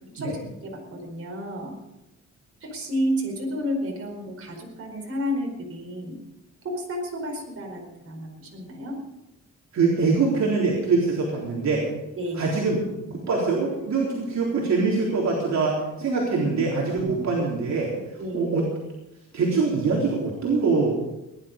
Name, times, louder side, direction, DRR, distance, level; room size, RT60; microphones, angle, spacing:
voice 1, 0.0-1.8 2.6-6.2 6.6-9.0 12.2-12.4 18.2-18.5, equal, 50° right, 1 dB, 4.7 m, -31 dB
voice 2, 9.7-11.9 12.3-12.9 13.3-17.9 18.3-18.7 19.3-21.0, right 4 dB, 65° right, -4 dB, 3.7 m, -23 dB
18.5 x 11.5 x 5.2 m, 0.93 s
cardioid pair, 125°, 30 cm